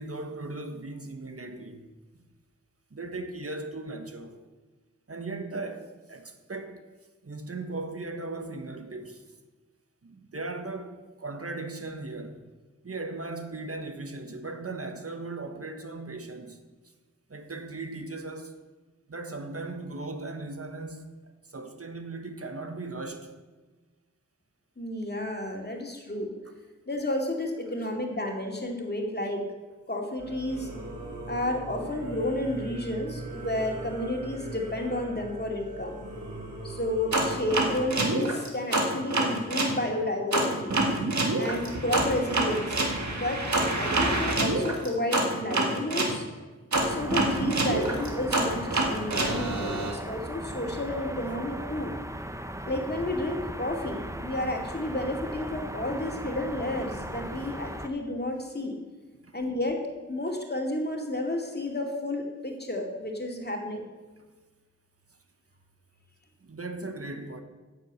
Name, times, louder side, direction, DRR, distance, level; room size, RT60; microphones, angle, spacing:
voice 1, 0.0-2.2 2.9-4.4 5.1-6.9 7.2-9.2 10.0-12.4 12.8-16.6 17.3-18.5 19.1-23.3 59.2-59.4 66.4-67.4, right 2 dB, 50° right, 1.3 m, -38 dB
voice 2, 24.8-26.3 26.9-29.4 29.9-30.7 31.3-36.0 36.6-40.8 41.4-42.8 43.1-43.4 43.8-46.2 46.8-51.9 52.7-58.8 59.3-59.8 60.1-63.8, left 1 dB, 35° left, 2.4 m, -31 dB
Singing / Musical instrument, 30.2-37.9, right 1 dB, 90° right, 3.5 m, -40 dB
sound 1, 37.1-39.8 40.3-46.2 46.7-49.9, right 2 dB, 70° right, 2.0 m, -26 dB
sound 2, 46.7-57.9, right 1 dB, 10° right, 0.9 m, -38 dB
10.5 x 7.3 x 8.2 m
wide cardioid pair, 55°, 30 cm